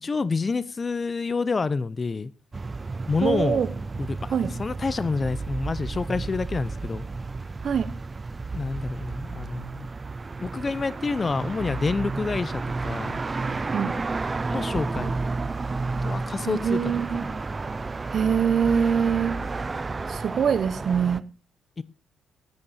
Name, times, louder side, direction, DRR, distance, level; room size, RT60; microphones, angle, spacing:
voice 1, 0.0-2.3 3.1-3.6 4.0-7.0 8.5-9.9 10.4-13.2 14.5-15.2 16.0-16.8 17.1-17.3 21.8-21.9, left 4 dB, 30° left, 0.8 m, -28 dB
sound 1, 2.5-21.2, right 3 dB, 25° right, 0.5 m, -32 dB
voice 2, 3.2-3.7 4.3-4.6 7.6-7.9 13.7-14.0 16.4-17.3 18.1-19.4 20.1-21.3, right 7 dB, 55° right, 1.2 m, -24 dB
14.0 x 9.8 x 4.2 m
cardioid pair, 90°, 0 cm